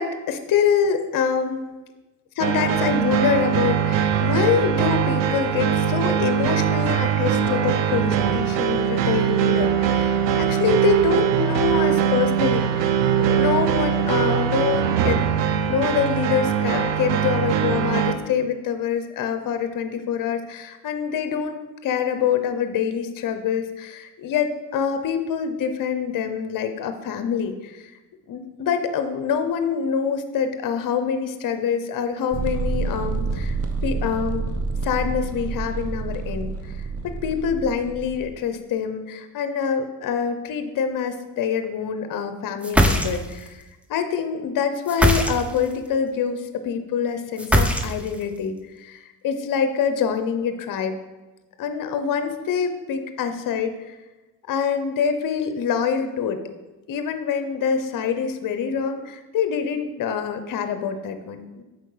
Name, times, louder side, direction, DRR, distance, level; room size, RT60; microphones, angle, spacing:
voice 1, 0.0-1.7 2.4-15.2 15.7-27.9 28.3-33.6 33.8-34.5 34.8-43.6 43.9-51.0 51.6-54.0 54.5-56.4 56.9-61.6, left 7 dB, 45° left, 8 dB, 0.8 m, -25 dB
sound 1, 2.4-18.1, right 9 dB, 65° right, 0.7 m, -21 dB
sound 2, 32.3-38.2, right 4 dB, 30° right, 0.9 m, -28 dB
sound 3, 42.6-43.5 44.9-45.7 47.4-48.2, equal, 5° right, 0.6 m, -20 dB
7.5 x 4.7 x 3.3 m, 1.1 s
hypercardioid pair, 55°, 47 cm